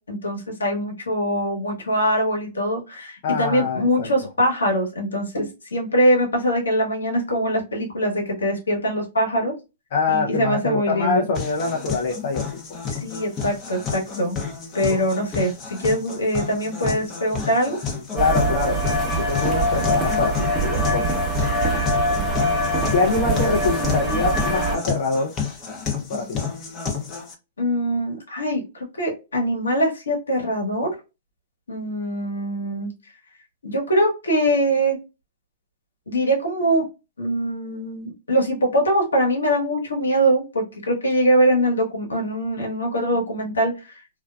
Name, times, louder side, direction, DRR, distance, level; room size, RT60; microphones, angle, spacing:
voice 1, 0.1-9.5 10.1-11.2 12.9-14.4 14.7-17.8 27.6-30.9 31.7-32.9 33.6-35.0 36.1-36.9 37.2-44.0, equal, 85° left, 0 dB, 1.1 m, -23 dB
voice 2, 3.2-4.1 9.9-12.8 18.1-21.3 22.9-25.3 26.1-26.4, left 4 dB, 55° left, 0 dB, 0.5 m, -24 dB
sound 1, 11.3-27.3, left 6 dB, 30° left, 0.8 m, -31 dB
sound 2, 18.2-24.8, right 1 dB, 10° right, 0.9 m, -23 dB
2.5 x 2.2 x 2.2 m, 0.27 s
hypercardioid pair, 120°, 0 cm